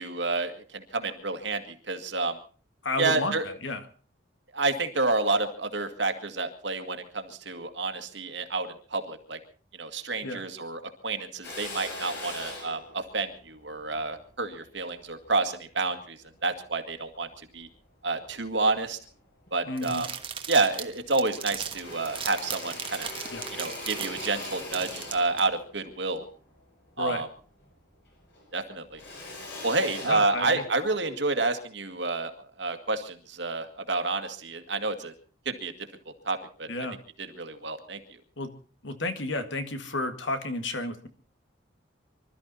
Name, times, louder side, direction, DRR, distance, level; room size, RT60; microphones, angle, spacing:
voice 1, 0.0-2.4 3.0-3.4 4.5-9.4 9.7-17.7 18.0-19.0 19.5-20.1 20.5-23.1 23.5-26.2 27.0-27.3 28.5-29.0 29.6-35.1 35.5-35.7 36.3-36.7 37.4-38.2, right 3 dB, 65° right, 7 dB, 2.1 m, -29 dB
voice 2, 2.8-3.3 3.6-3.9 10.2-10.4 19.7-20.0 23.3-23.5 27.0-27.3 30.0-30.6 36.7-37.0 38.4-38.5 38.8-41.1, left 2 dB, 75° left, 9 dB, 1.9 m, -32 dB
Drill, 11.4-16.0 16.5-17.7 18.2-19.1 19.5-19.6 19.8-20.8 21.1-27.8 28.0-30.9, left 2 dB, 55° left, 7.2 m, -42 dB
sound 1, 19.8-25.4, right 7 dB, 25° right, 1.3 m, -38 dB
25.0 x 13.0 x 4.2 m, 0.38 s
head